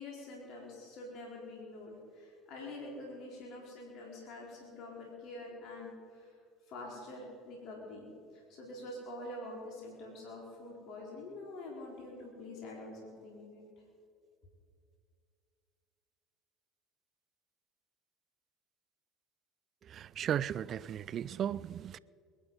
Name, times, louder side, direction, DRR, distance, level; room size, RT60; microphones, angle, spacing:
voice 1, 0.0-6.4 6.7-8.1 8.3-13.6, left 2 dB, 60° left, 4.2 m, -46 dB
voice 2, 19.8-22.0, right 9 dB, 50° right, 0.4 m, -35 dB
21.5 x 11.5 x 5.5 m
hypercardioid pair, 80°, 0 cm